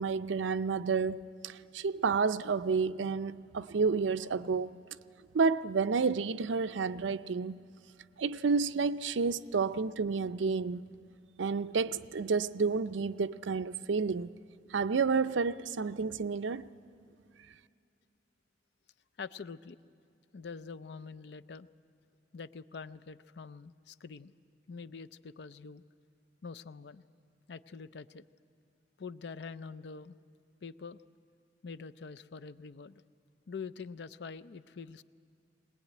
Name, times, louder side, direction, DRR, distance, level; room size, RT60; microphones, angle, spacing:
voice 1, 0.0-4.8 5.3-7.6 8.2-10.9 11.4-14.3 14.7-16.7, right 5 dB, 85° right, 0.5 m, -30 dB
voice 2, 19.2-19.8 20.3-21.7 22.3-24.3 24.7-25.8 26.4-27.0 27.5-28.2 29.0-30.1 30.6-31.0 31.6-33.0 33.5-35.0, left 5 dB, 65° left, 0.5 m, -45 dB
21.0 x 19.5 x 9.3 m
head